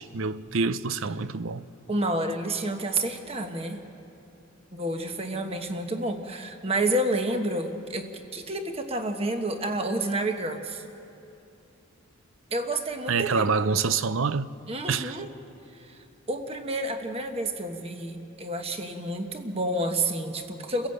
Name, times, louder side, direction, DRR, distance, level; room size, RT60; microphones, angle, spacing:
voice 1, 0.0-1.7 13.1-14.5 14.9-15.2, right 4 dB, 70° right, 0.6 m, -26 dB
voice 2, 1.9-3.8 4.7-10.8 12.5-13.5 14.7-15.3 15.8-16.0 16.3-20.9, right 1 dB, 30° right, 1.3 m, -29 dB
29.0 x 16.5 x 7.9 m
head